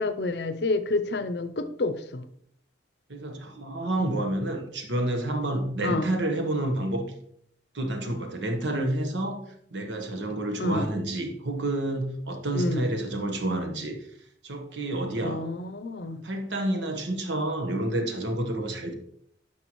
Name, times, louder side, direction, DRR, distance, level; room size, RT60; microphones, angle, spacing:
voice 1, 0.0-2.3 4.0-4.1 5.8-6.1 10.6-10.9 12.5-12.8 15.2-16.2, left 2 dB, 60° left, 11 dB, 0.6 m, -29 dB
voice 2, 3.1-7.1 7.7-9.4 9.7-14.0 14.4-15.5 16.2-18.9, right 1 dB, 75° right, 5 dB, 1.2 m, -29 dB
9.9 x 5.9 x 3.1 m, 0.69 s
head